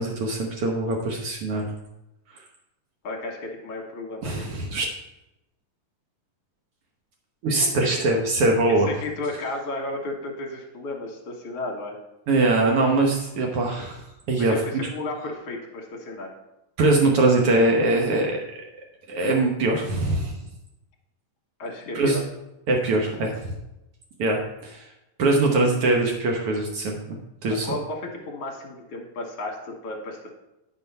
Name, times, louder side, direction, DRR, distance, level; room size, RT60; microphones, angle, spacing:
voice 1, 0.0-1.7 4.2-4.9 7.4-8.9 12.3-14.5 16.8-18.4 19.1-20.4 21.9-22.2 22.7-23.5 24.2-24.8 25.2-27.7, right 2 dB, 75° right, 1 dB, 1.3 m, -22 dB
voice 2, 3.0-4.5 7.7-7.9 8.7-12.0 14.4-16.3 21.6-22.2 27.6-30.3, left 2 dB, 55° left, 0 dB, 1.8 m, -33 dB
10.5 x 4.6 x 5.4 m, 0.92 s
omnidirectional pair, 4.0 m